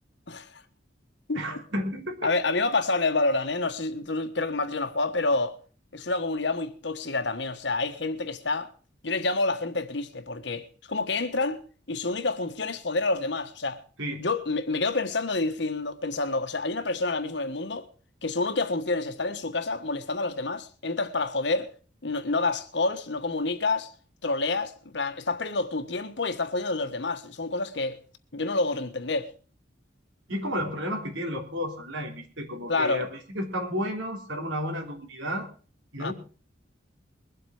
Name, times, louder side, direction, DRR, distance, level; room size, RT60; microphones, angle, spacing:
voice 1, 0.3-0.6 1.3-1.4 2.2-5.6 5.9-8.7 9.0-11.6 11.9-13.8 14.2-17.8 18.2-21.7 22.0-23.9 24.2-28.0 28.3-29.3 32.7-33.0 36.0-36.1, left 3 dB, 65° left, 1.5 m, -28 dB
voice 2, 1.3-2.3 14.0-14.2 30.3-35.5 35.9-36.1, equal, 80° right, 3.3 m, -32 dB
22.5 x 8.1 x 4.9 m
head